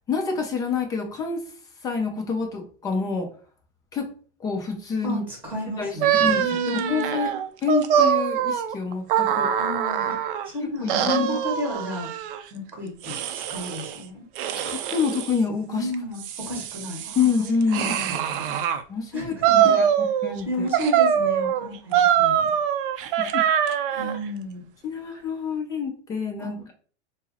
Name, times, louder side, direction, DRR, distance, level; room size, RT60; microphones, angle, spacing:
voice 1, 0.1-1.4 1.8-3.3 3.9-4.1 4.4-5.2 5.8-5.9 6.2-9.5 10.6-11.4 14.6-15.9 17.2-17.9 18.9-19.9 20.2-20.7 23.0-23.4 23.9-24.1 24.8-26.7, left 5 dB, 10° left, 3 dB, 0.3 m, -27 dB
voice 2, 5.0-7.2 9.6-10.2 10.5-12.1 12.5-14.2 15.7-17.2 17.6-18.2 19.1-19.8 20.4-22.5 23.9-24.6 26.4-26.5, equal, 5° right, 0 dB, 1.5 m, -32 dB
sound 1, 6.0-10.5 10.9-12.4 13.0-14.0 14.4-15.4 15.9-18.8 19.4-20.4 20.7-24.2, right 9 dB, 50° right, 0.5 m, -23 dB
4.6 x 2.0 x 4.1 m, 0.43 s
supercardioid pair, 150°, 35 cm